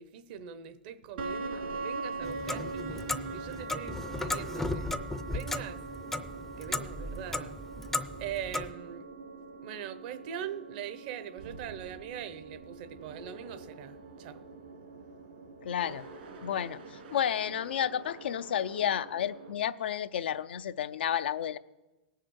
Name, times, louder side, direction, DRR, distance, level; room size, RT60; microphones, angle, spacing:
voice 1, 0.0-4.9 5.2-5.8 6.6-7.6 8.2-9.1 9.6-14.4, right 9 dB, 55° right, 0.8 m, -42 dB
sound 1, 1.2-19.5, right 3 dB, 75° right, 2.3 m, -42 dB
Clock, 2.2-8.7, left 2 dB, 5° left, 0.4 m, -36 dB
voice 2, 15.6-16.0 16.4-21.6, left 9 dB, 90° left, 0.5 m, -31 dB
17.5 x 6.5 x 6.3 m
hypercardioid pair, 135°, 5 cm